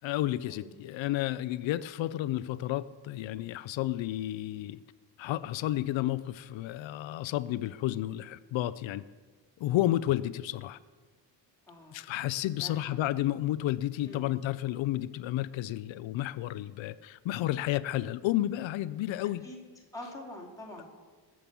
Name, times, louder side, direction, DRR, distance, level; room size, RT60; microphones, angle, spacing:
voice 1, 0.0-4.8 5.2-9.0 9.6-10.8 11.9-19.4, left 14 dB, 85° left, 15 dB, 0.6 m, -31 dB
voice 2, 11.7-12.0 12.5-13.1 14.1-14.3 19.4-19.6 19.9-20.8, left 1 dB, 5° left, -3 dB, 2.8 m, -45 dB
21.0 x 7.6 x 7.0 m, 1.4 s
wide cardioid pair, 170°, 44 cm